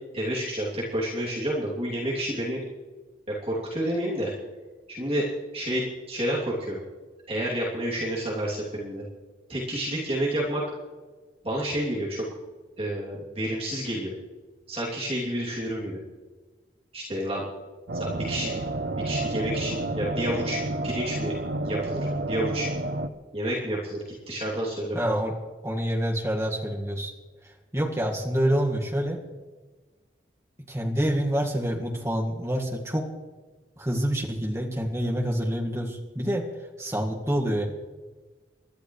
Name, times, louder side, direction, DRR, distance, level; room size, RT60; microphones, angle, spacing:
voice 1, 0.1-2.6 3.3-4.3 4.9-5.3 5.5-6.8 7.3-9.0 9.5-10.6 11.4-12.2 12.8-14.1 14.7-16.0 16.9-17.4 17.9-18.6 19.0-20.6 20.8-21.3 21.6-22.7 23.3-25.2, right 1 dB, 35° right, -5 dB, 3.0 m, -29 dB
sound 1, 17.9-23.1, right 2 dB, 70° right, 0.8 m, -30 dB
voice 2, 24.9-25.4 25.6-27.1 27.7-29.2 30.7-33.1 33.8-36.5 36.8-37.6, equal, 15° right, -1 dB, 1.9 m, -27 dB
28.5 x 12.0 x 3.3 m, 1.3 s
head